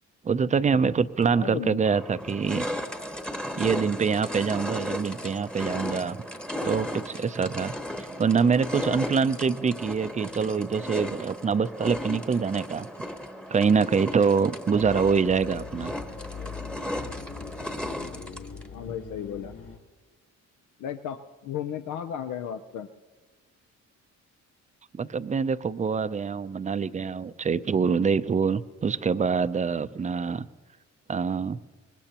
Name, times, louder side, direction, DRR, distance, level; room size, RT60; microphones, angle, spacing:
voice 1, 0.2-2.7 3.6-6.2 6.6-7.7 8.2-12.9 13.5-15.9 24.9-30.5 31.1-31.6, right 5 dB, 25° right, 14 dB, 0.5 m, -25 dB
sound 1, 1.2-1.3 1.8-18.7, left 1 dB, 5° left, 1.0 m, -35 dB
voice 2, 1.3-1.8 18.7-19.5 20.8-22.9, left 9 dB, 80° left, 8 dB, 0.7 m, -34 dB
sound 2, 14.7-19.8, left 6 dB, 50° left, 4.0 m, -41 dB
24.0 x 20.0 x 2.9 m, 1.4 s
cardioid pair, 90°, 30 cm